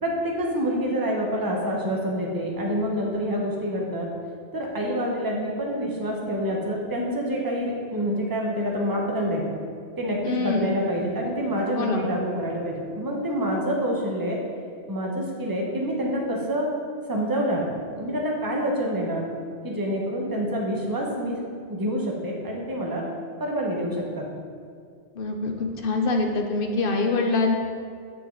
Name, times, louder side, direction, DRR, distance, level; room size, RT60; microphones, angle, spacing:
voice 1, 0.0-4.1 4.5-9.4 10.0-14.4 14.9-16.7 17.1-17.6 17.9-19.2 19.6-21.4 21.7-23.0 23.4-24.3, equal, 20° right, -2 dB, 1.0 m, -27 dB
voice 2, 10.2-10.7 11.8-12.1 25.2-27.5, left 3 dB, 55° left, 3 dB, 0.9 m, -24 dB
8.0 x 6.3 x 3.9 m, 2.2 s
omnidirectional pair, 1.2 m